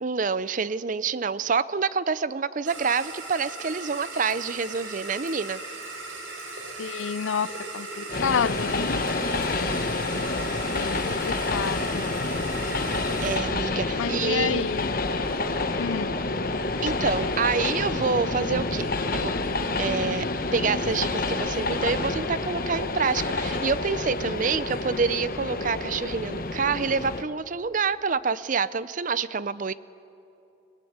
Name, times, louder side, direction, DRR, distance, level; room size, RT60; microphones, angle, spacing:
voice 1, 0.0-5.6 13.2-14.7 16.8-19.3 19.8-20.3 20.5-29.7, right 5 dB, 40° right, 17 dB, 0.5 m, -27 dB
sound 1, 2.6-13.4, right 2 dB, 90° right, 4.1 m, -38 dB
voice 2, 6.8-9.0 10.7-12.0 13.9-15.0 15.8-16.2, left 6 dB, 80° left, 19 dB, 0.5 m, -29 dB
Train, 8.1-27.2, left 3 dB, 45° left, 1.1 m, -28 dB
22.5 x 19.5 x 8.7 m, 2.8 s
head